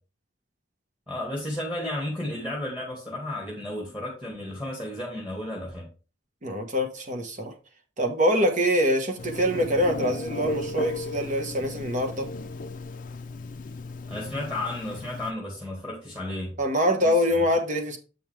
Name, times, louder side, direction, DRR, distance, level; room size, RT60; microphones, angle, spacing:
voice 1, 1.1-5.9 14.1-16.5 17.0-17.5, left 1 dB, 5° right, 1.9 m, -33 dB
voice 2, 6.4-7.5 8.0-12.3 16.6-18.0, equal, 40° right, 1.3 m, -24 dB
Telephone, 9.2-15.3, left 2 dB, 45° left, 0.5 m, -36 dB
8.0 x 5.5 x 3.4 m
head